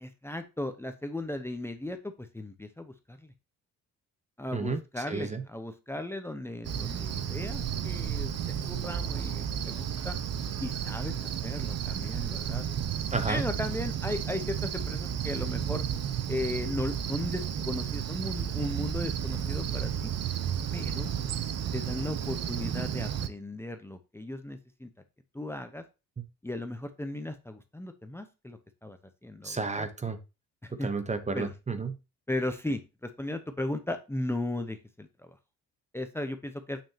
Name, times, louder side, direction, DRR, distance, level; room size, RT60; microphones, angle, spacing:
voice 1, 0.0-3.3 4.4-10.2 10.6-11.1 11.4-12.7 13.3-15.8 16.3-20.1 20.7-21.1 21.7-24.9 25.3-25.8 26.4-29.0 29.2-29.8 30.6-30.9 31.3-31.5 32.3-35.3 35.9-36.8, left 1 dB, 10° left, 8 dB, 0.8 m, -36 dB
voice 2, 5.1-5.4 13.1-13.5 26.2-26.3 29.4-30.2 30.8-32.0, right 4 dB, 25° right, 10 dB, 1.0 m, -32 dB
Cricket, 6.6-23.3, right 8 dB, 55° right, 0.8 m, -32 dB
7.1 x 6.1 x 2.8 m, 0.28 s
cardioid pair, 90°, 30 cm